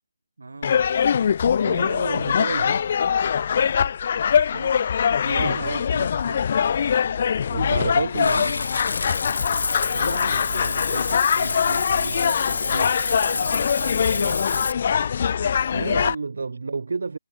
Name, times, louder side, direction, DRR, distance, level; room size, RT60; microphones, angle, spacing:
voice 1, 0.4-0.7 4.3-4.9 5.3-6.5 9.9-14.4, right 3 dB, 90° right, 7.3 m, -37 dB
sound 1, 0.6-16.1, left 7 dB, 30° left, 0.3 m, -23 dB
voice 2, 1.6-2.9 5.2-5.9 7.5-8.6 15.4-17.2, right 4 dB, 55° right, 1.2 m, -30 dB
Water / Bathtub (filling or washing), 8.1-14.7, left 4 dB, 65° left, 2.9 m, -28 dB
hypercardioid pair, 180°, 0 cm